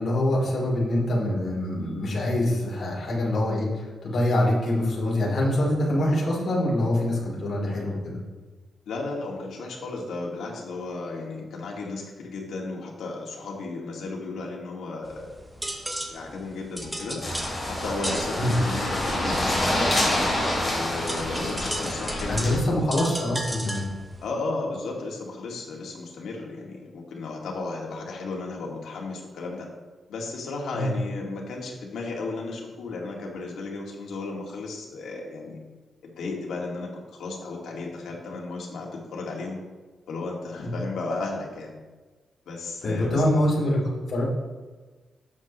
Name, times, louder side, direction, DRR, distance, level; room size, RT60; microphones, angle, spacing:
voice 1, 0.0-8.2 18.4-18.5 22.3-23.8 30.7-30.9 40.6-40.7 42.8-43.8 44.1-44.2, left 1 dB, 45° left, -4 dB, 3.2 m, -25 dB
voice 2, 8.9-15.3 16.1-17.2 17.7-19.9 20.6-22.7 24.2-29.7 30.1-35.6 36.0-39.6 40.1-41.7 42.5-43.2, left 3 dB, 80° left, -1 dB, 2.2 m, -34 dB
sound 1, 15.0-24.3, right 1 dB, 10° right, 0.9 m, -36 dB
sound 2, 17.2-22.6, left 1 dB, 10° left, 3.0 m, -27 dB
12.0 x 7.6 x 3.1 m, 1.3 s
wide cardioid pair, 165°, 0 cm